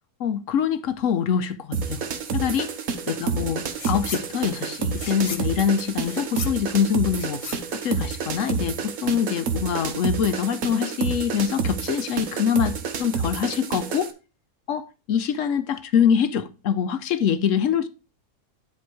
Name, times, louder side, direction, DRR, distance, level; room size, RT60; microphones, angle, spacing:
voice 1, 0.2-2.0 2.3-2.7 3.1-7.4 7.8-14.1 14.7-17.9, left 8 dB, 65° left, 1.0 m, -24 dB
sound 1, 1.7-14.1, right 5 dB, 70° right, 1.4 m, -29 dB
sound 2, 3.7-4.3 4.6-8.5, left 5 dB, 45° left, 0.4 m, -38 dB
10.0 x 3.6 x 4.7 m
omnidirectional pair, 1.5 m